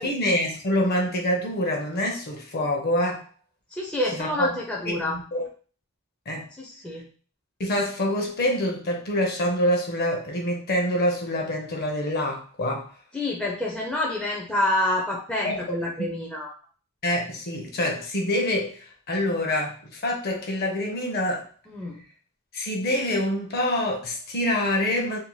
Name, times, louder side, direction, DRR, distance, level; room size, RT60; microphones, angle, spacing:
voice 1, 0.0-3.3 4.2-4.5 4.9-5.4 6.3-6.5 7.6-12.9 15.4-16.1 17.0-21.5 22.5-25.2, left 1 dB, 45° left, 1 dB, 0.6 m, -26 dB
voice 2, 3.7-5.2 6.6-7.1 13.1-16.5 21.7-22.0, left 1 dB, 5° left, -3 dB, 0.4 m, -28 dB
2.7 x 2.1 x 3.0 m, 0.40 s
head